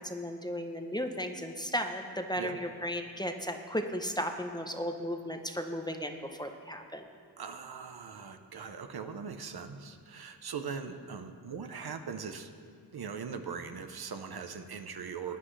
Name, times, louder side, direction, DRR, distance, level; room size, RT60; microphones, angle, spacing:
voice 1, 0.0-7.1 11.7-11.9, equal, 10° left, 5 dB, 0.7 m, -35 dB
voice 2, 7.4-12.5 12.9-15.4, right 6 dB, 60° right, 7 dB, 0.8 m, -40 dB
16.0 x 10.0 x 3.2 m, 2.2 s
cardioid pair, 65°, 43 cm